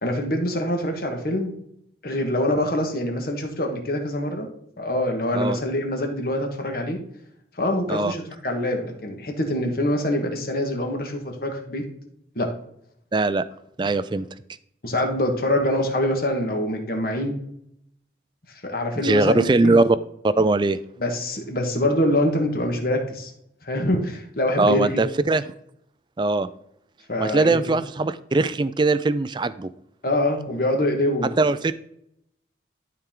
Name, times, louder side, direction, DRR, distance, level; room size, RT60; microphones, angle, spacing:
voice 1, 0.0-1.5 2.0-4.5 4.8-7.0 7.6-11.8 12.3-12.5 14.8-17.3 18.6-19.7 21.0-23.3 23.6-25.0 27.1-27.8 30.0-31.3, left 1 dB, 50° left, 3 dB, 1.6 m, -25 dB
voice 2, 13.1-13.4 13.8-14.2 19.0-20.0 20.2-20.8 24.6-25.4 26.2-26.5 27.2-29.7 31.4-31.7, right 3 dB, 25° right, 14 dB, 0.3 m, -20 dB
12.0 x 4.5 x 3.8 m, 0.73 s
head